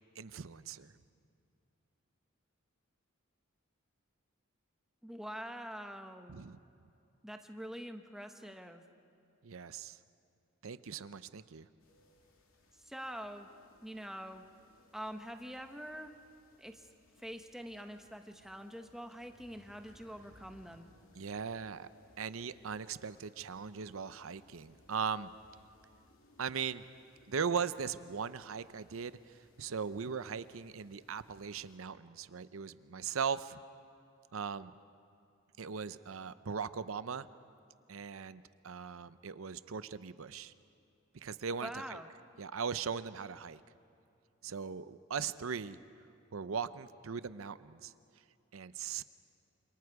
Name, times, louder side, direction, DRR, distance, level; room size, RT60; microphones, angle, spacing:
voice 1, 0.2-0.9 6.3-6.6 9.4-10.0 10.6-11.7 21.2-21.9 22.2-25.3 26.4-26.8 27.3-29.2 29.6-33.6 34.3-34.7 35.6-37.3 37.9-40.5 41.2-42.0 42.4-43.6 44.4-45.8 46.3-47.9 48.5-49.0, right 6 dB, 80° right, 14 dB, 0.6 m, -39 dB
voice 2, 5.0-6.4 7.2-8.8 12.8-13.5 13.8-14.4 14.9-16.1 16.6-16.9 17.2-20.9 41.6-42.1, equal, ahead, 5 dB, 1.1 m, -45 dB
sound 1, 11.8-31.8, left 1 dB, 85° left, 2.7 m, -66 dB
28.0 x 26.5 x 4.8 m, 2.5 s
head